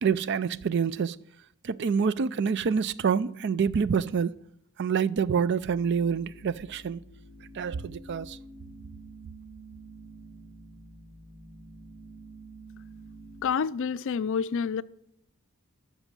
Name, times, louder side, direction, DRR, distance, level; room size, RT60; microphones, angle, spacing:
voice 1, 0.0-1.2 1.6-4.3 4.8-7.0 7.5-8.4, right 6 dB, 50° right, 0.4 m, -27 dB
sound 1, 5.6-13.5, right 2 dB, 80° right, 1.9 m, -48 dB
voice 2, 13.4-14.8, left 6 dB, 60° left, 0.4 m, -28 dB
13.0 x 6.2 x 7.4 m
head